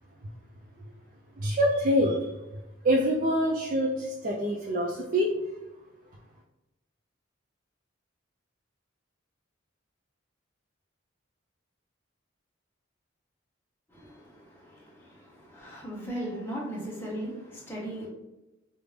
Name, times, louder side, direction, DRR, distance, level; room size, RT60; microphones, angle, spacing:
voice 1, 1.4-2.3 2.8-5.3, equal, 40° right, -1 dB, 0.4 m, -25 dB
voice 2, 13.9-18.1, right 1 dB, 10° left, -5 dB, 0.9 m, -38 dB
3.4 x 2.6 x 3.2 m, 1.0 s
head